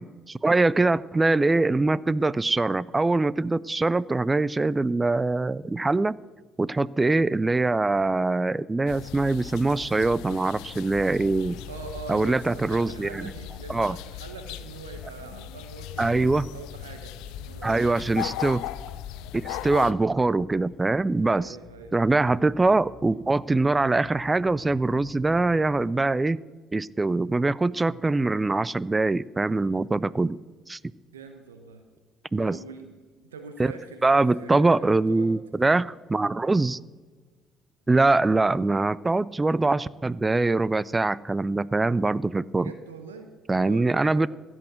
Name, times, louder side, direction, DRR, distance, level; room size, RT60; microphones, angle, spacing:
voice 1, 0.0-6.1 6.6-11.6 12.1-13.3 13.7-14.0 16.0-16.5 17.6-18.6 19.3-21.6 21.9-26.4 26.7-30.4 30.7-30.8 32.3-32.6 33.6-33.7 34.0-36.8 37.9-42.7 43.5-44.3, right 3 dB, 20° right, 21 dB, 0.4 m, -23 dB
sound 1, 8.9-19.9, left 12 dB, 70° left, 0.5 m, -38 dB
voice 2, 11.7-18.0 19.8-19.9 21.3-21.9 31.1-31.8 32.3-35.3 35.6-35.7 42.6-43.3 43.6-44.3, right 4 dB, 85° right, 6 dB, 0.9 m, -43 dB
Bass guitar, 16.8-25.8, left 2 dB, 30° left, 1.6 m, -51 dB
15.5 x 6.3 x 7.8 m, 1.4 s
hypercardioid pair, 50°, 0 cm